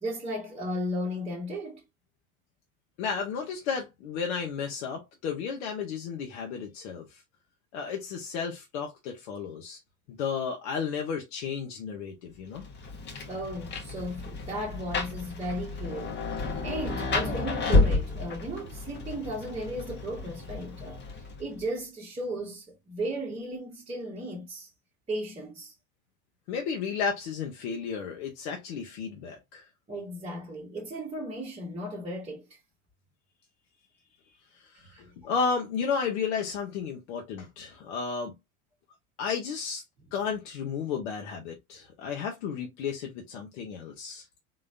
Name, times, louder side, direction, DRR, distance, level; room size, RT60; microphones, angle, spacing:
voice 1, 0.0-1.8 13.3-24.7 25.1-25.7 29.9-32.4 34.7-35.3, equal, 15° right, 1.1 m, -35 dB
voice 2, 3.0-7.2 7.7-9.8 10.1-12.6 26.5-29.7 34.5-38.3 39.2-39.8 40.1-44.2, left 6 dB, 55° left, 1.0 m, -33 dB
Rain, 12.5-21.6, left 3 dB, 25° left, 1.0 m, -31 dB
3.8 x 3.1 x 2.5 m
figure-of-eight pair, 75°, 42 cm